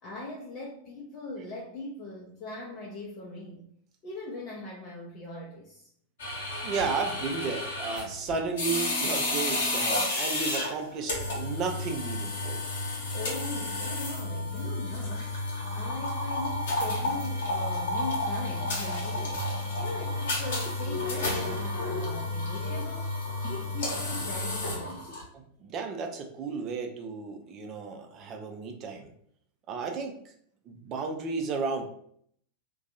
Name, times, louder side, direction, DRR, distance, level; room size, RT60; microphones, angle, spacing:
voice 1, 0.0-3.7 4.0-5.9 13.1-15.3 15.7-19.4 19.8-23.1 23.5-25.1, left 2 dB, 35° left, -3 dB, 0.6 m, -40 dB
sound 1, 6.2-25.2, left 2 dB, 60° left, 1.0 m, -31 dB
voice 2, 6.6-12.6 25.3-29.1 29.7-30.1 30.7-31.9, right 4 dB, 35° right, 4 dB, 0.6 m, -33 dB
2.6 x 2.3 x 4.0 m, 0.65 s
figure-of-eight pair, 90°, 0 cm